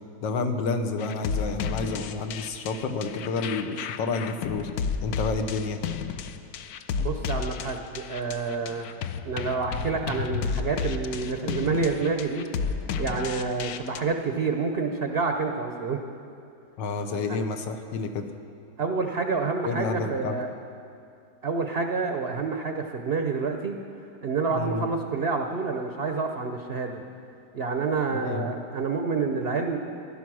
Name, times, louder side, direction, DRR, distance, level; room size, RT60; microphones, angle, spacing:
voice 1, 0.2-4.7 5.0-5.8 16.8-18.3 19.6-20.3 24.5-24.8 28.1-28.5, left 4 dB, 85° left, 6 dB, 1.6 m, -29 dB
sound 1, 1.0-14.0, left 6 dB, 70° left, 1.0 m, -32 dB
voice 2, 7.0-8.9 9.2-12.5 13.0-16.0 18.8-20.5 21.4-23.8 24.2-27.0 27.5-29.8, right 4 dB, 50° right, 5 dB, 0.7 m, -28 dB
15.5 x 11.0 x 6.2 m, 2.5 s
omnidirectional pair, 1.9 m